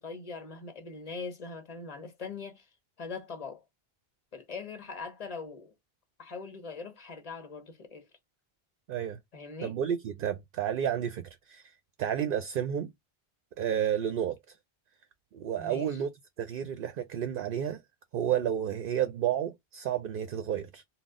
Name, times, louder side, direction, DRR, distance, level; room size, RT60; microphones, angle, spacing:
voice 1, 0.0-2.7 3.0-3.6 4.3-5.7 6.2-8.1 9.3-9.8 15.6-16.0, left 4 dB, 40° left, 1.0 m, -41 dB
voice 2, 8.9-9.2 9.6-11.7 12.0-12.9 13.6-14.6 15.3-16.1 16.4-17.8 18.1-20.8, right 9 dB, 65° right, 0.7 m, -31 dB
3.9 x 2.0 x 3.5 m
omnidirectional pair, 1.0 m